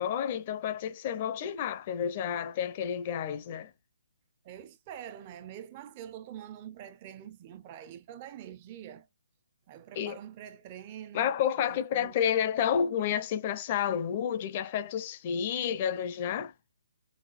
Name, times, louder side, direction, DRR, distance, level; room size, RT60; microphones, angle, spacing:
voice 1, 0.0-3.7 10.0-10.2 11.1-16.5, left 8 dB, 30° left, 0.5 m, -30 dB
voice 2, 4.4-9.1 9.7-11.4 11.7-12.2, right 10 dB, 25° right, 0.4 m, -45 dB
4.0 x 3.3 x 2.5 m
hypercardioid pair, 160°, 0 cm